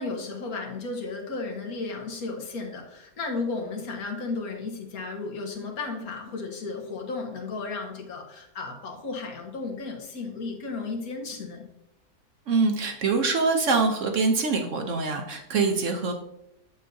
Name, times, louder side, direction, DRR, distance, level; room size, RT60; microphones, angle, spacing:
voice 1, 0.0-11.7 15.6-15.9, left 3 dB, 70° left, 2 dB, 1.6 m, -34 dB
voice 2, 12.5-16.1, right 4 dB, 60° right, 4 dB, 0.9 m, -24 dB
7.6 x 6.9 x 2.7 m, 0.82 s
omnidirectional pair, 1.7 m